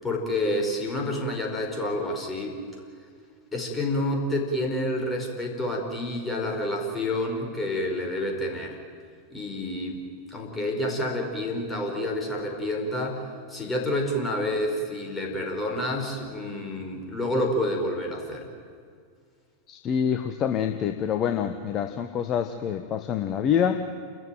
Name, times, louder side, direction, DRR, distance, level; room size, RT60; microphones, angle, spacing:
voice 1, 0.0-2.6 3.5-8.8 9.3-10.0 10.3-13.2 13.5-18.5, left 1 dB, 15° left, 1 dB, 5.1 m, -28 dB
voice 2, 19.7-23.9, left 8 dB, 30° left, 7 dB, 1.2 m, -26 dB
29.5 x 14.0 x 9.2 m, 2.2 s
figure-of-eight pair, 90°, 0 cm